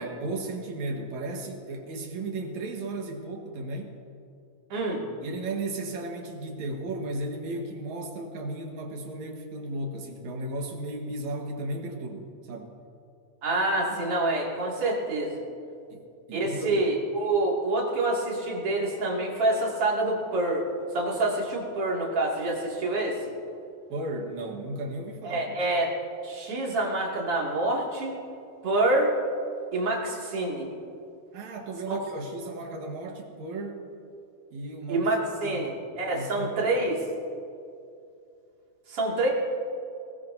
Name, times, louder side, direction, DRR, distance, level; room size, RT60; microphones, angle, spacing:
voice 1, 0.0-3.9 5.2-12.7 13.9-14.1 15.9-16.9 23.9-25.6 31.3-33.9 34.5-35.1 35.4-35.9 36.1-36.7, right 2 dB, 70° right, 2 dB, 2.7 m, -35 dB
voice 2, 4.7-5.1 13.4-15.4 16.3-20.7 20.9-23.2 25.2-25.9 26.2-28.2 28.6-29.1 29.7-30.7 31.9-32.0 34.9-37.0 38.9-39.3, right 2 dB, 50° right, -3 dB, 3.2 m, -27 dB
20.0 x 19.5 x 2.7 m, 2.6 s
omnidirectional pair, 3.5 m